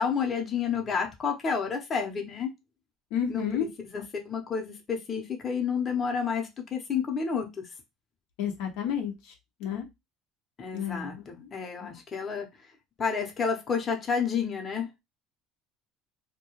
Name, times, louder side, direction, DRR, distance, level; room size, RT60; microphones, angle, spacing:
voice 1, 0.0-2.5 3.3-3.5 3.9-7.5 10.6-12.5 13.0-14.9, left 6 dB, 35° left, 0.8 m, -30 dB
voice 2, 3.1-3.7 4.0-4.1 8.4-9.1 9.6-9.9 10.7-11.5 11.8-12.0, left 8 dB, 80° left, 0.6 m, -31 dB
2.3 x 2.2 x 3.0 m
supercardioid pair, 100°, 0 cm